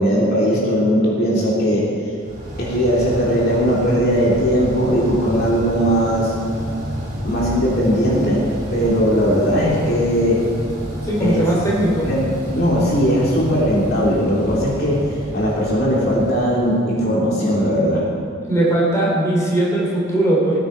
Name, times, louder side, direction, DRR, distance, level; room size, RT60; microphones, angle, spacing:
voice 1, 0.0-1.9 2.6-6.3 7.2-10.4 11.2-11.4 12.0-15.1 15.3-18.0, equal, 50° left, -5 dB, 2.9 m, -18 dB
sound 1, 2.2-17.2, equal, 40° right, 3.6 m, -30 dB
voice 2, 11.0-12.1 18.5-20.6, right 1 dB, 15° left, -5 dB, 3.2 m, -19 dB
19.5 x 9.4 x 4.5 m, 2.3 s
head